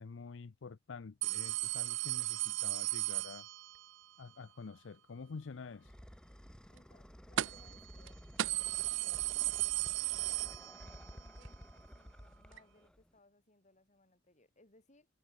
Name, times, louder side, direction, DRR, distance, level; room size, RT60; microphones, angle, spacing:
voice 1, 0.0-3.5 4.2-5.9, left 4 dB, 80° left, 0.5 m, -48 dB
sound 1, 1.2-3.9 7.4-7.8 8.1-8.2 8.4-11.1 11.5-11.6 12.6-12.7, right 15 dB, 80° right, 0.6 m, -35 dB
sound 2, 5.2-13.2, equal, 5° left, 1.2 m, -54 dB
voice 2, 6.7-8.2 9.0-15.1, left 2 dB, 40° left, 6.4 m, -66 dB
head